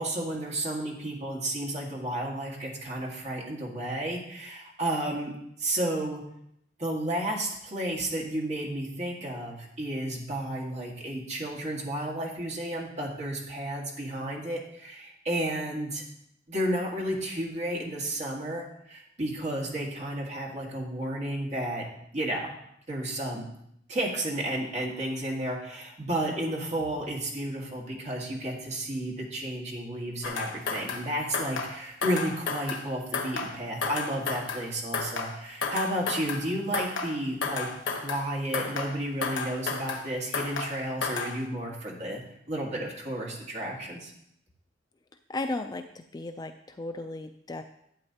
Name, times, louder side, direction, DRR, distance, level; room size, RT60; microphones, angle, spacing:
voice 1, 0.0-6.2 6.8-16.0 16.5-21.9 22.1-22.6 22.9-23.5 23.9-42.2 42.5-44.1, right 1 dB, 40° right, -1 dB, 1.8 m, -32 dB
sound 1, 30.2-31.1 31.3-31.8 32.0-32.9 33.1-33.6 33.8-34.7 34.9-35.4 35.6-36.5 36.7-37.2 37.4-38.3 38.5-39.0 39.2-40.1 40.3-40.8 41.0-41.4, left 4 dB, 85° left, 1.2 m, -32 dB
voice 2, 45.3-47.6, left 2 dB, 20° left, 7 dB, 0.3 m, -35 dB
12.0 x 8.2 x 2.9 m, 0.74 s
head